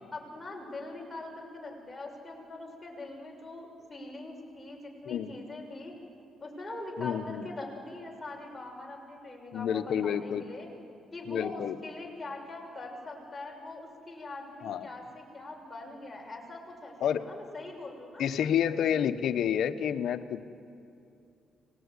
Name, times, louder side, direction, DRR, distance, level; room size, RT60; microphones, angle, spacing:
voice 1, 0.1-5.9 6.4-10.7 11.1-18.2, left 2 dB, 15° left, -2 dB, 6.6 m, -42 dB
voice 2, 7.0-7.5 9.5-10.4 11.3-11.8 14.6-14.9 17.0-17.2 18.2-20.4, left 9 dB, 70° left, 10 dB, 1.1 m, -29 dB
25.0 x 19.0 x 9.8 m, 2.6 s
cardioid pair, 90°, 0 cm